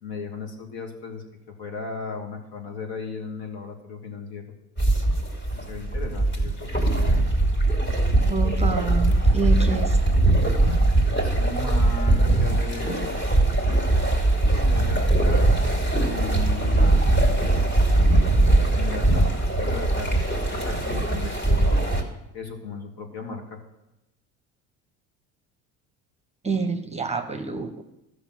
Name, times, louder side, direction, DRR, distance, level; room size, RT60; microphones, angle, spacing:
voice 1, 0.0-4.5 5.5-7.3 11.2-13.2 14.7-15.7 15.9-17.0 18.6-19.3 19.6-21.8 22.3-23.6, left 4 dB, 60° left, 2 dB, 2.7 m, -36 dB
sound 1, 4.8-22.0, right 2 dB, 25° left, 2.6 m, -21 dB
voice 2, 8.3-10.0 26.4-27.8, right 4 dB, 15° right, 6 dB, 1.1 m, -27 dB
13.0 x 6.5 x 6.1 m, 0.91 s
hypercardioid pair, 80°, 42 cm